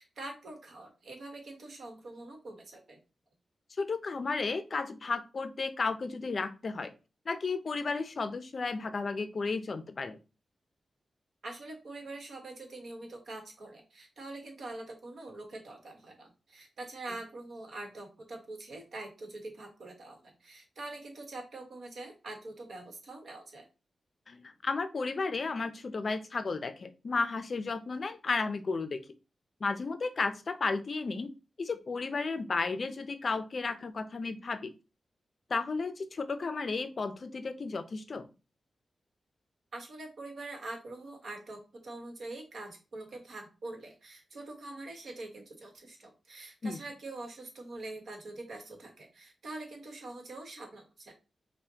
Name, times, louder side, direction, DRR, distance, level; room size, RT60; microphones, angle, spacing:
voice 1, 0.0-3.0 11.4-23.7 39.7-51.1, right 2 dB, 70° right, 2 dB, 1.2 m, -44 dB
voice 2, 3.8-6.9 7.3-10.2 24.3-29.0 29.6-31.3 31.6-34.7 35.5-38.3 46.6-46.8, left 4 dB, 50° left, 10 dB, 0.4 m, -33 dB
5.6 x 2.2 x 2.8 m, 0.31 s
wide cardioid pair, 110°, 0 cm